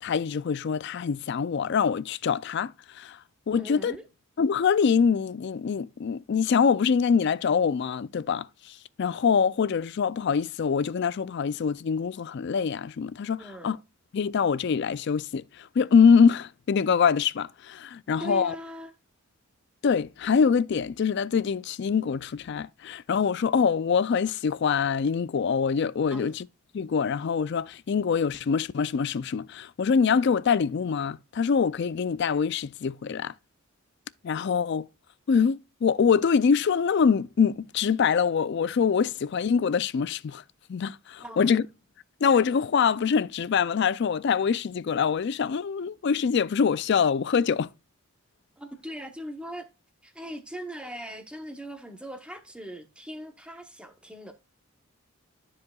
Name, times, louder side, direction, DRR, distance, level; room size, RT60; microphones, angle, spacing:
voice 1, 0.0-3.2 3.5-4.0 4.4-13.8 14.1-18.6 19.8-26.4 26.7-33.3 34.2-34.9 35.3-40.4 40.7-41.6 42.2-47.7, left 6 dB, 50° left, 0.3 m, -24 dB
voice 2, 3.6-4.0 13.4-13.8 18.2-18.9 26.1-26.4 41.2-41.6 48.6-49.7 50.0-54.3, right 1 dB, 5° right, 0.9 m, -40 dB
13.0 x 4.8 x 2.3 m
head